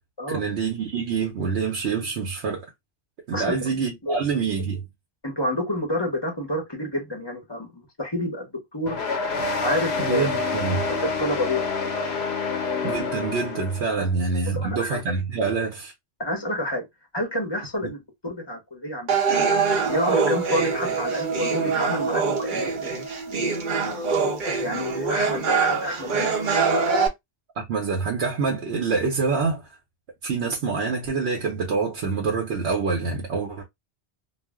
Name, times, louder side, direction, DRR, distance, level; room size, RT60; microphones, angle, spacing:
voice 1, 0.3-2.7 3.3-4.8 10.0-10.9 12.8-15.9 27.6-29.8 30.2-33.6, right 4 dB, 80° right, 0.9 m, -26 dB
voice 2, 3.3-4.2 5.2-9.0 9.6-10.3 10.9-11.6 14.5-15.0 16.2-16.8 17.1-18.0 18.2-19.2 19.8-23.1 23.8-24.1 24.6-26.7, left 1 dB, 25° left, 0.8 m, -29 dB
sound 1, 8.9-14.0, left 4 dB, 80° left, 0.9 m, -27 dB
sound 2, 19.1-27.1, right 5 dB, 55° right, 0.8 m, -24 dB
2.4 x 2.0 x 3.3 m
omnidirectional pair, 1.1 m